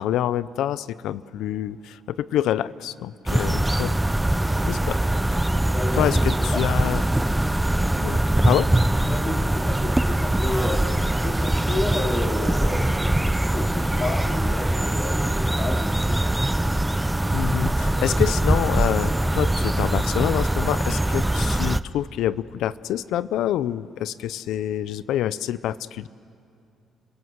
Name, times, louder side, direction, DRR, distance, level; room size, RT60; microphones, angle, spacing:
voice 1, 0.0-3.9 4.7-5.0 5.3-5.4 5.9-7.0 8.0-8.2 8.5-8.7 17.3-26.1, left 12 dB, 85° left, 17 dB, 0.5 m, -26 dB
sound 1, 3.3-21.8, right 1 dB, 5° right, 0.5 m, -22 dB
voice 2, 5.6-6.3 6.5-6.6 9.1-16.2, left 2 dB, 35° left, 1 dB, 3.3 m, -31 dB
30.0 x 16.5 x 7.9 m, 2.4 s
cardioid pair, 120°, 0 cm